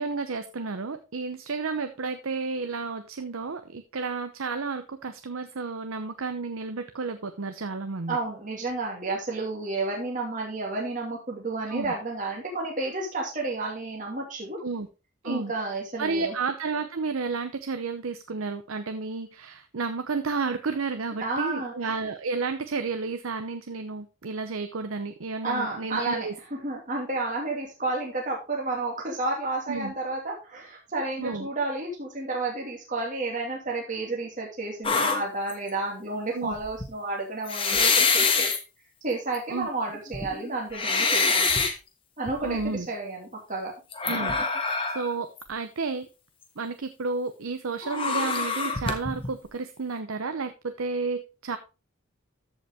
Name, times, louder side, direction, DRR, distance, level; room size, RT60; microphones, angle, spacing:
voice 1, 0.0-8.2 11.7-11.9 14.6-14.9 15.2-15.5 16.0-26.4 29.7-29.9 31.2-31.5 36.3-36.5 39.5-39.7 42.4-42.9 44.1-44.3 44.9-46.1 46.6-51.6, right 4 dB, 75° right, 9 dB, 0.7 m, -31 dB
voice 2, 8.1-14.6 15.2-16.3 21.2-21.7 25.4-38.5 39.0-41.6 42.2-43.7, right 2 dB, 35° right, -2 dB, 2.7 m, -31 dB
sound 1, 34.8-35.7 36.5-36.8 37.5-38.6 39.3-39.4 39.9-41.7 42.3-42.6 43.9-45.1 45.4-45.5 47.8-49.3, left 4 dB, 25° left, 1.3 m, -25 dB
14.0 x 5.2 x 3.5 m, 0.30 s
head